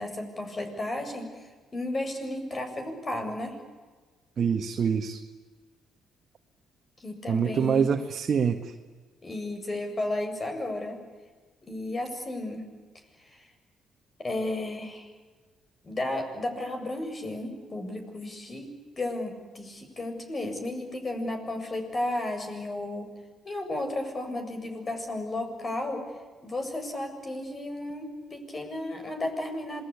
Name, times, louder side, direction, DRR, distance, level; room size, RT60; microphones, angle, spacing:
voice 1, 0.0-1.5 1.7-3.6 7.0-7.9 9.2-11.0 11.6-12.6 13.3-13.5 14.2-15.1 15.8-18.7 19.0-23.1 23.4-26.1 26.4-29.8, left 1 dB, 35° left, 5 dB, 7.3 m, -33 dB
voice 2, 4.4-5.2 7.3-8.7, right 7 dB, 55° right, 3 dB, 1.7 m, -25 dB
27.0 x 20.0 x 8.5 m, 1.4 s
supercardioid pair, 55°, 0 cm